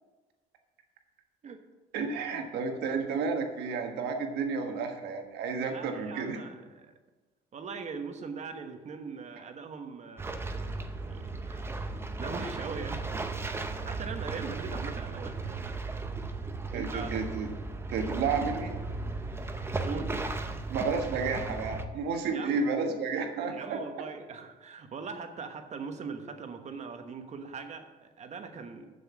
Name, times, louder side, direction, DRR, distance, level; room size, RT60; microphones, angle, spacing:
voice 1, 1.9-6.4 16.7-17.5 17.9-18.8 20.7-23.8, right 4 dB, 75° right, 4 dB, 1.4 m, -31 dB
voice 2, 5.6-6.9 7.5-10.6 11.0-11.7 12.2-13.1 13.6-15.6 16.7-17.1 19.8-20.1 22.3-22.6 23.5-29.0, right 5 dB, 40° right, 6 dB, 1.1 m, -41 dB
sound 1, 10.2-21.8, right 3 dB, 15° right, 0.7 m, -36 dB
7.1 x 7.0 x 6.9 m, 1.2 s
cardioid pair, 110°, 17 cm